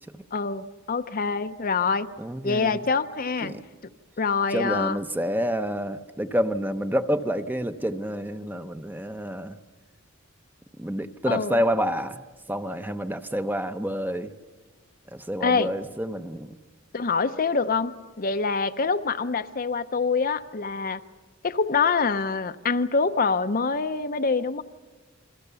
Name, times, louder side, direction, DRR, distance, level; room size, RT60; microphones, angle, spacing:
voice 1, 0.3-2.1 2.4-3.5 4.2-5.0 11.3-11.6 15.4-15.7 16.9-21.0 21.4-24.6, left 4 dB, 45° left, 10 dB, 0.7 m, -25 dB
voice 2, 2.2-2.8 3.4-3.6 4.5-9.6 10.8-12.2 12.5-14.3 15.1-16.5, equal, 10° right, 9 dB, 0.7 m, -28 dB
29.0 x 22.0 x 6.9 m, 1.3 s
head